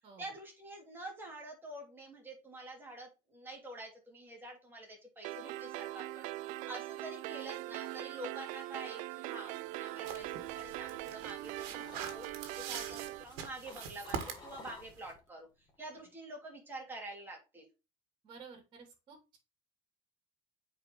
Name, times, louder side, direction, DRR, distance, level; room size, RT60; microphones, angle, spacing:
voice 1, 0.2-12.3 12.6-17.7, right 1 dB, 15° right, 0 dB, 3.0 m, -47 dB
sound 1, 5.2-13.2, right 17 dB, 60° right, 0.4 m, -42 dB
sound 2, 9.5-11.4 11.7-12.5 13.0-15.3 15.6-15.9, left 4 dB, 30° left, 2.0 m, -54 dB
sound 3, 10.0-15.1, right 7 dB, 80° right, 1.8 m, -44 dB
voice 2, 18.2-19.4, right 5 dB, 35° right, 4 dB, 3.0 m, -53 dB
8.9 x 4.8 x 3.1 m, 0.28 s
cardioid pair, 155°, 15 cm